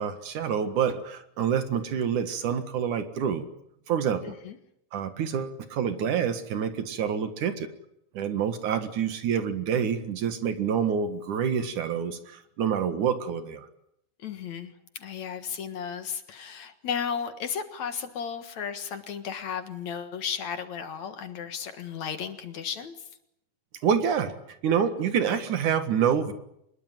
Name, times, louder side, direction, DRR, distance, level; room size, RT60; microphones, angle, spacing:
voice 1, 0.0-3.4 3.9-4.3 4.9-7.7 8.1-13.7 23.8-24.3 24.6-26.3, right 7 dB, 65° right, 10 dB, 3.1 m, -27 dB
voice 2, 4.2-4.6 14.2-23.0, left 7 dB, 60° left, 9 dB, 2.7 m, -34 dB
25.0 x 21.5 x 9.1 m, 0.77 s
omnidirectional pair, 4.0 m